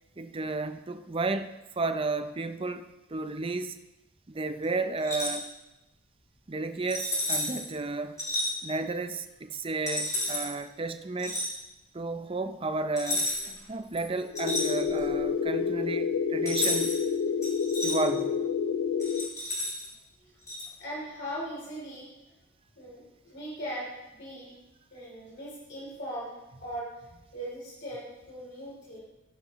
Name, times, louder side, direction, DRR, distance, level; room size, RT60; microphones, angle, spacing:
voice 1, 0.2-3.8 4.3-5.5 6.5-8.2 8.6-11.4 11.9-13.3 13.7-16.9 17.8-18.4, right 3 dB, 25° right, 9 dB, 0.5 m, -32 dB
sound 1, 5.0-5.4 6.9-7.6 8.2-8.5 9.9-10.5 11.2-11.5 13.0-13.6 13.9-15.1 16.5-17.0 17.4-17.9 19.0-19.9 20.5-20.6, left 1 dB, 15° left, 4.1 m, -31 dB
voice 2, 8.3-8.7 20.2-20.3 20.8-22.1 22.7-24.5 24.9-26.3 26.6-26.9 27.3-29.0, equal, 55° left, -6 dB, 3.2 m, -39 dB
sound 2, 14.3-19.3, left 6 dB, 85° left, 0.5 m, -28 dB
15.5 x 11.5 x 3.1 m, 0.99 s
head